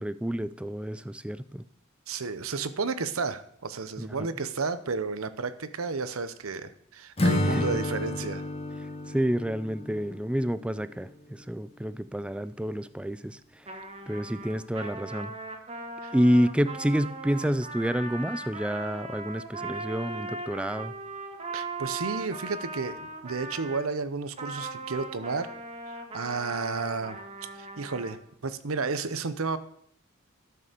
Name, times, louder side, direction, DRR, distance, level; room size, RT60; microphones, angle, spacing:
voice 1, 0.0-1.6 4.0-4.3 7.5-7.6 9.1-13.4 14.1-15.3 16.1-20.9, equal, 5° right, 15 dB, 0.4 m, -28 dB
voice 2, 2.1-8.4 16.0-16.1 21.5-25.5 25.9-27.2 27.5-29.6, right 4 dB, 90° right, 13 dB, 0.9 m, -32 dB
Acoustic guitar / Strum, 7.2-11.1, left 1 dB, 30° left, 1.4 m, -30 dB
Trumpet, 13.6-23.9 24.4-28.1, right 3 dB, 30° right, 1.7 m, -39 dB
12.5 x 6.8 x 6.7 m, 0.71 s
head